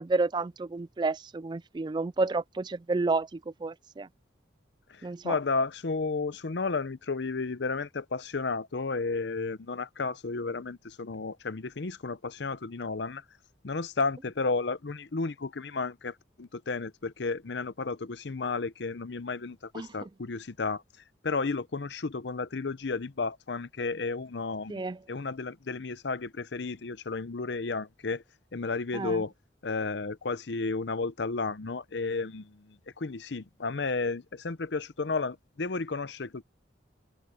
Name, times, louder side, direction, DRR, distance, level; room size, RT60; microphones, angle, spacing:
voice 1, 0.0-4.1 5.0-5.3 19.7-19.9 24.7-25.0 28.9-29.2, right 3 dB, 25° right, 0.3 m, -30 dB
voice 2, 4.9-13.2 13.6-20.8 21.2-24.8 25.1-28.2 28.5-29.3 29.6-36.4, left 4 dB, 65° left, 0.7 m, -32 dB
head